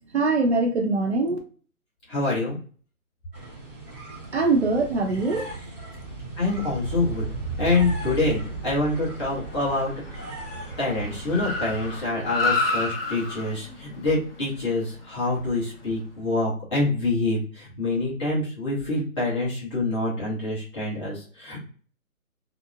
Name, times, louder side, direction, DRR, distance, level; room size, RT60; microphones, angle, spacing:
voice 1, 0.1-1.4 4.3-5.5, right 3 dB, 50° right, 2 dB, 0.6 m, -22 dB
voice 2, 2.1-2.6 6.4-7.3 7.6-9.9 10.2-10.3 10.8-21.6, left 2 dB, 20° left, -7 dB, 1.0 m, -26 dB
sound 1, 3.3-12.1, right 3 dB, 15° right, 0.7 m, -36 dB
Car, 6.5-16.0, left 3 dB, 40° left, 0.7 m, -33 dB
2.8 x 2.0 x 2.5 m, 0.42 s
hypercardioid pair, 160°, 44 cm